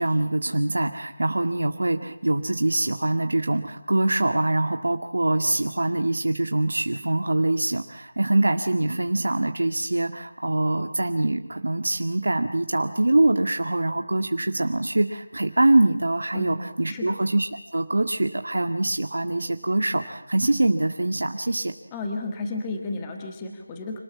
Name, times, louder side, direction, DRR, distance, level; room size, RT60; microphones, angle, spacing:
voice 1, 0.0-21.7, right 2 dB, 85° right, 6 dB, 1.9 m, -24 dB
voice 2, 21.9-24.0, left 2 dB, 10° left, 3 dB, 1.5 m, -32 dB
26.5 x 19.5 x 8.6 m, 0.82 s
figure-of-eight pair, 180°, 0 cm